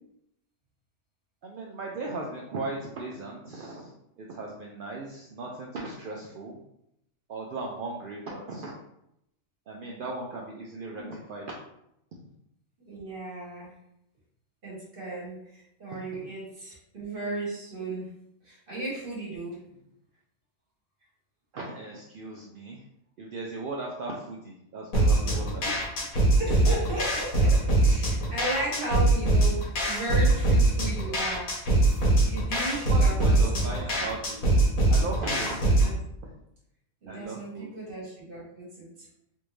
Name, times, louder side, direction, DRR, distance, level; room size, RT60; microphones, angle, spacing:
voice 1, 1.4-3.9 4.2-6.6 7.3-8.7 9.7-11.5 21.5-22.8 23.2-25.8 32.5-34.6 34.9-35.6 36.2-36.3 37.1-37.7, right 2 dB, 75° right, -2 dB, 0.4 m, -37 dB
voice 2, 12.9-13.7 14.6-18.1 18.4-19.6 25.6-25.8 26.4-31.5 32.2-33.7 35.6-35.9 37.0-39.1, right 2 dB, 45° right, -6 dB, 1.3 m, -35 dB
sound 1, 24.9-35.9, right 2 dB, 85° left, 1.4 m, -23 dB
3.4 x 2.6 x 3.1 m, 0.79 s
omnidirectional pair, 1.4 m